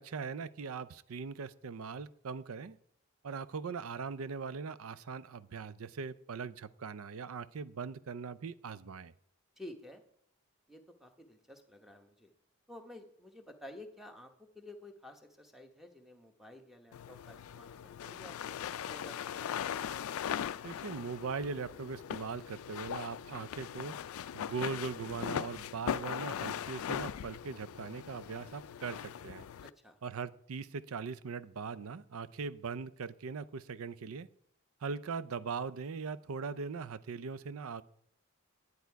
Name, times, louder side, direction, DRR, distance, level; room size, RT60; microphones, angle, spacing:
voice 1, 0.0-2.8 3.2-9.1 20.6-24.0 24.3-29.5 30.0-34.3 34.8-37.8, right 5 dB, 80° right, 16 dB, 0.5 m, -40 dB
voice 2, 9.6-10.0 10.7-12.3 12.7-19.6 29.6-30.0, left 1 dB, ahead, 5 dB, 1.0 m, -52 dB
sound 1, 16.9-29.7, left 9 dB, 80° left, 0.3 m, -40 dB
10.5 x 9.6 x 4.6 m, 0.66 s
head